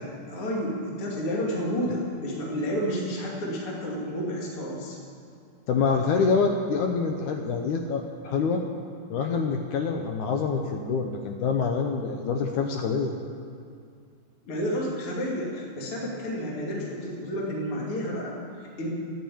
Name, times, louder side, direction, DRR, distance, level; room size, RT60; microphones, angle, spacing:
voice 1, 0.0-5.0 5.9-6.0 14.4-18.9, equal, 40° left, -3 dB, 3.1 m, -31 dB
voice 2, 5.7-8.6 9.1-13.1, left 5 dB, 70° left, 3 dB, 2.0 m, -26 dB
13.0 x 11.0 x 8.6 m, 2.3 s
omnidirectional pair, 4.2 m